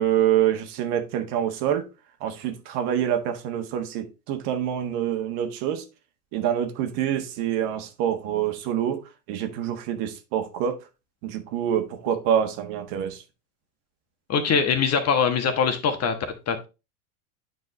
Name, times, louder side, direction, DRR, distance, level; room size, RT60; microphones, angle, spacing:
voice 1, 0.0-1.8 2.2-5.8 6.3-10.8 11.2-13.2, right 10 dB, 55° right, 1.5 m, -26 dB
voice 2, 14.3-16.1 16.5-16.6, left 6 dB, 35° left, 1.4 m, -22 dB
9.2 x 4.6 x 3.2 m
hypercardioid pair, 95°, 45 cm